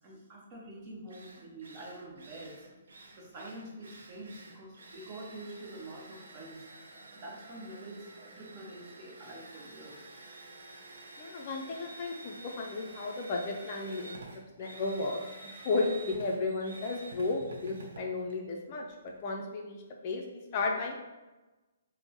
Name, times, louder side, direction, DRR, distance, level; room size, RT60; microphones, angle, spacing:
voice 1, 0.0-2.7 3.1-6.7 7.1-10.0, right 1 dB, 30° right, -3 dB, 0.9 m, -46 dB
Drill, 0.6-0.7 1.1-19.2, right 2 dB, 65° right, 0.6 m, -50 dB
voice 2, 11.2-14.2 14.6-21.0, left 3 dB, 35° left, 0 dB, 0.4 m, -34 dB
4.3 x 2.0 x 2.8 m, 1.1 s
figure-of-eight pair, 130°, 0 cm